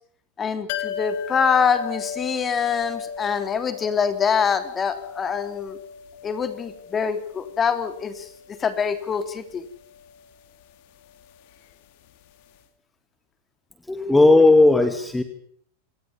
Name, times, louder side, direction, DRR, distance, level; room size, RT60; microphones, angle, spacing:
voice 1, 0.4-5.8 6.2-8.2 8.6-9.6, left 6 dB, 25° left, 10 dB, 3.3 m, -24 dB
sound 1, 0.7-12.3 12.6-12.7, left 7 dB, 60° left, 2.9 m, -37 dB
voice 2, 13.9-15.2, left 2 dB, 5° left, 8 dB, 2.4 m, -15 dB
27.5 x 18.5 x 7.2 m, 0.62 s
hypercardioid pair, 105°, 0 cm